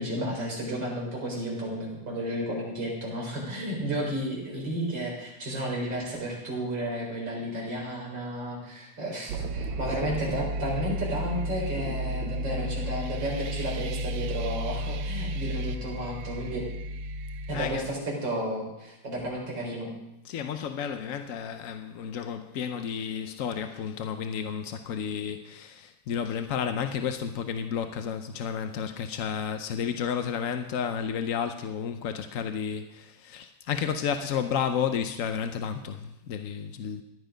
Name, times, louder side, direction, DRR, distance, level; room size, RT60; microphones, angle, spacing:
voice 1, 0.0-16.6 17.5-19.9, right 1 dB, 65° right, -2 dB, 5.0 m, -32 dB
sound 1, 9.3-17.7, equal, 80° right, 1.5 m, -33 dB
voice 2, 17.5-17.9 20.2-37.0, left 7 dB, 65° left, 8 dB, 0.8 m, -32 dB
15.5 x 11.5 x 5.1 m, 0.90 s
omnidirectional pair, 2.2 m